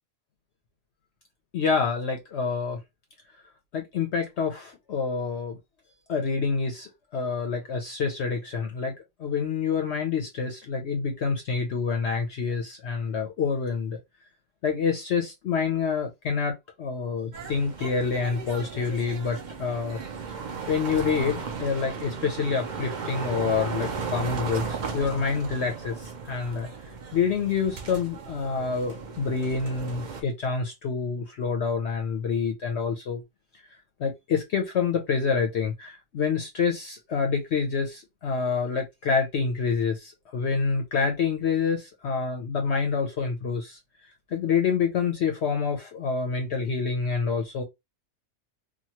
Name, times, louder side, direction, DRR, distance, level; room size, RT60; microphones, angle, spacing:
voice 1, 1.5-2.8 3.7-5.6 6.1-14.0 14.6-20.0 20.3-20.4 20.7-26.7 27.1-33.2 34.0-43.8 44.3-47.6, left 5 dB, 60° left, 0.8 m, -27 dB
sound 1, 17.3-30.2, right 5 dB, 55° right, 0.5 m, -35 dB
2.9 x 2.2 x 2.8 m
omnidirectional pair, 1.5 m